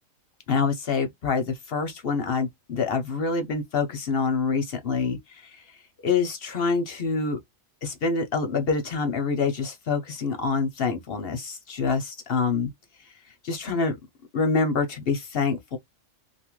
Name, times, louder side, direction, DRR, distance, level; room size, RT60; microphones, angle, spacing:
voice 1, 0.5-5.6 6.0-7.4 7.8-12.7 13.4-14.0 14.3-15.8, left 4 dB, 55° left, 0.7 m, -26 dB
2.6 x 2.4 x 3.0 m
omnidirectional pair, 1.4 m